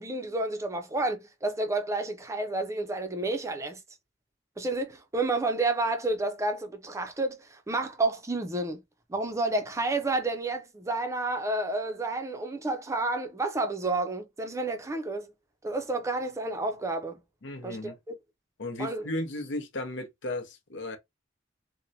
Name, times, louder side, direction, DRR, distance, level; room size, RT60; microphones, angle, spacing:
voice 1, 0.0-3.8 4.6-8.8 9.1-15.3 15.6-17.2 17.6-17.9 18.8-19.1, right 2 dB, 15° right, 0.4 m, -30 dB
voice 2, 17.4-18.0 18.6-21.0, left 1 dB, 80° left, 0.7 m, -35 dB
2.9 x 2.1 x 2.6 m
head